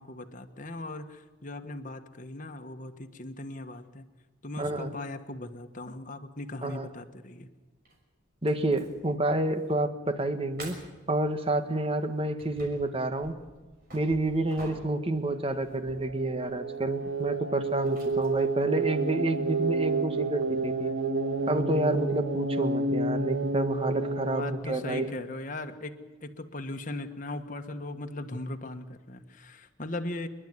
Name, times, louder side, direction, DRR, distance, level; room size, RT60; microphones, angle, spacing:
voice 1, 0.0-4.0 4.4-7.5 24.3-30.3, left 2 dB, 40° left, 6 dB, 1.5 m, -38 dB
voice 2, 4.6-4.9 6.6-6.9 8.4-10.8 11.1-13.4 13.9-20.9 21.5-25.1, right 1 dB, 30° right, 9 dB, 1.6 m, -29 dB
sound 1, 7.8-8.0 8.5-9.1 9.5-9.7 10.1-10.2 10.6-11.1 11.8-19.9, right 1 dB, 45° right, 6.1 m, -50 dB
sound 2, 15.1-24.5, right 3 dB, 80° right, 2.1 m, -30 dB
29.0 x 11.5 x 9.6 m, 1.3 s
head